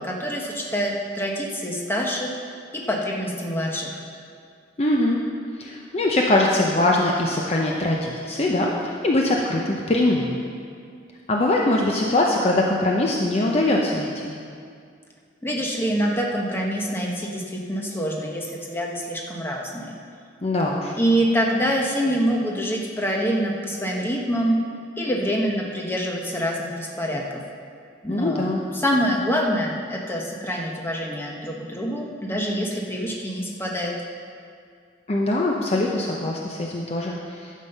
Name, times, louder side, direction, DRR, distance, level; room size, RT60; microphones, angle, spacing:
voice 1, 0.0-2.4 2.9-4.0 15.4-20.0 21.0-24.6 25.0-27.2 28.0-33.9, equal, 15° left, -1 dB, 1.2 m, -25 dB
voice 2, 4.8-5.2 5.6-10.4 11.3-14.3 20.4-20.9 28.1-28.6 35.1-37.5, left 2 dB, 35° left, -1 dB, 0.7 m, -22 dB
11.5 x 7.5 x 5.5 m, 2.3 s
head